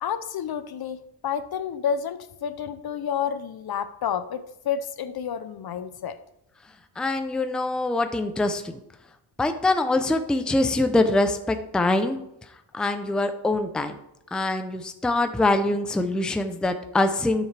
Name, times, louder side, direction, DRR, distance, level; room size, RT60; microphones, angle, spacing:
voice 1, 0.0-6.2, left 8 dB, 55° left, 13 dB, 0.6 m, -30 dB
voice 2, 7.0-8.6 9.4-12.2 12.7-14.0 14.3-17.5, left 2 dB, ahead, 7 dB, 0.5 m, -24 dB
12.5 x 7.4 x 3.3 m, 0.84 s
wide cardioid pair, 150°, 46 cm